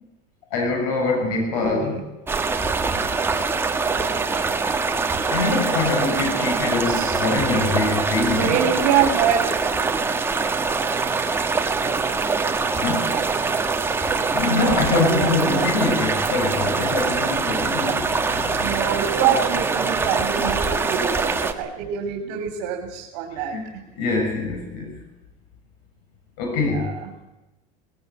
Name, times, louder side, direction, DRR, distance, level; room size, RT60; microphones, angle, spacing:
voice 1, 0.5-2.0 5.3-8.6 12.8-13.2 14.3-18.5 19.2-19.3 20.4-20.5 21.0-21.1 23.5-23.6 24.0-24.9 26.4-26.9, left 3 dB, 75° left, 3 dB, 6.8 m, -24 dB
voice 2, 1.2-2.0 6.8-7.8 8.4-9.9 13.0-13.2 14.9-15.7 18.6-23.8 26.7-27.1, right 9 dB, 70° right, 2 dB, 3.2 m, -26 dB
sound 1, 2.3-21.5, right 4 dB, 10° right, 1.5 m, -23 dB
19.5 x 17.5 x 9.4 m, 1.0 s
cardioid pair, 150°, 20 cm